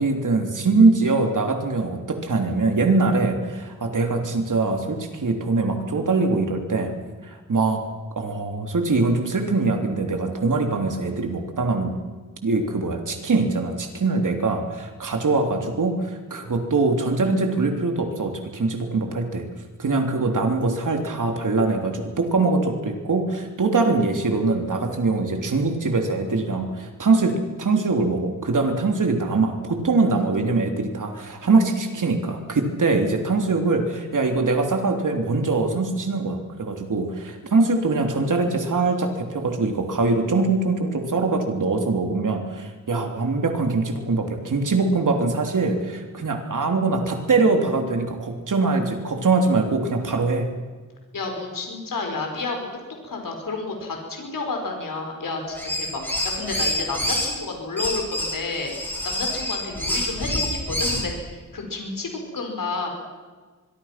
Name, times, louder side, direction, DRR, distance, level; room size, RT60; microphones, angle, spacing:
voice 1, 0.0-6.9 7.2-7.8 8.2-11.9 12.4-19.4 19.8-50.5, right 3 dB, 70° right, 4 dB, 3.5 m, -23 dB
voice 2, 51.1-52.7 53.0-63.1, left 3 dB, 90° left, 2 dB, 5.2 m, -31 dB
sound 1, 55.5-57.3 57.8-61.1, left 1 dB, 5° left, 7.8 m, -27 dB
24.5 x 23.0 x 6.0 m, 1.4 s
wide cardioid pair, 95°, 32 cm